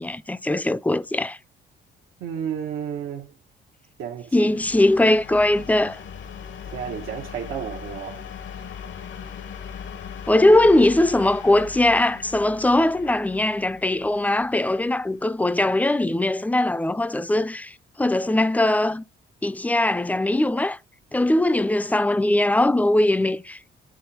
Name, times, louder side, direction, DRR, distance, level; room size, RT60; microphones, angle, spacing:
voice 1, 0.0-1.4 4.3-6.0 10.3-19.0 19.4-20.8 21.1-23.7, left 1 dB, 10° left, 0.4 m, -20 dB
voice 2, 2.2-3.4 4.0-4.5 6.7-8.2, right 8 dB, 85° right, 0.9 m, -32 dB
sound 1, 4.5-16.1, left 7 dB, 70° left, 0.8 m, -39 dB
10.5 x 3.7 x 2.9 m
cardioid pair, 90°, 20 cm